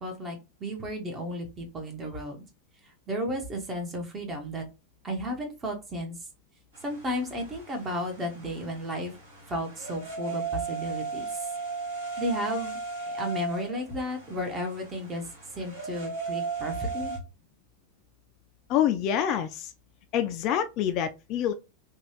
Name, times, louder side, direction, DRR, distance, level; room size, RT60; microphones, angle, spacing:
voice 1, 0.0-2.4 3.1-4.6 5.0-6.2 6.8-9.1 9.5-10.4 10.7-11.2 12.2-12.8 13.1-15.2 15.6-17.2, equal, 20° right, 1.0 m, -33 dB
sound 1, 6.7-17.2, right 4 dB, 65° right, 1.6 m, -36 dB
voice 2, 18.7-19.7 20.1-21.5, left 10 dB, 40° left, 0.3 m, -26 dB
2.9 x 2.3 x 2.9 m
figure-of-eight pair, 90°, 0 cm